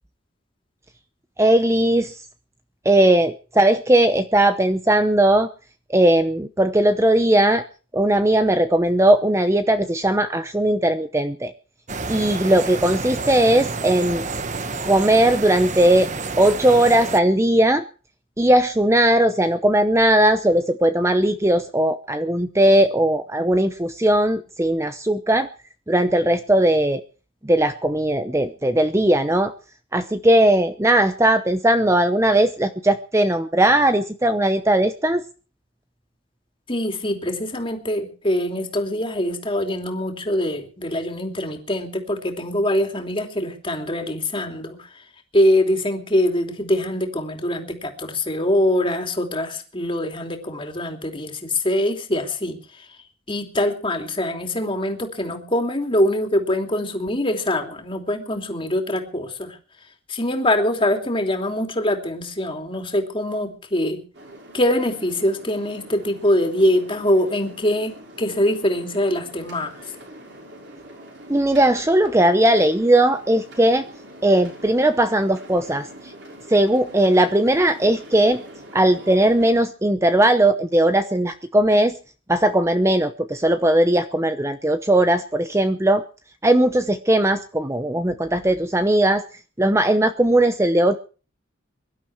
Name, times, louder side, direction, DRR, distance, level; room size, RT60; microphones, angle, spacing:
voice 1, 1.4-2.2 2.8-5.5 5.9-7.6 7.9-11.5 12.1-14.2 14.8-17.8 18.4-25.5 25.9-27.0 27.4-29.5 29.9-35.2 71.3-73.8 74.2-76.1 76.5-78.4 78.7-82.0 82.3-86.0 86.4-89.2 89.6-91.0, right 1 dB, 15° right, 9 dB, 0.8 m, -18 dB
sound 1, 11.9-17.2, right 3 dB, 40° right, 1.2 m, -29 dB
voice 2, 36.7-45.0 45.3-52.9 53.3-59.6 60.1-64.0 64.5-69.8, left 1 dB, 25° left, 5 dB, 3.0 m, -23 dB
sound 2, 64.1-79.5, right 1 dB, 65° right, 5.8 m, -43 dB
23.5 x 12.0 x 4.7 m, 0.38 s
head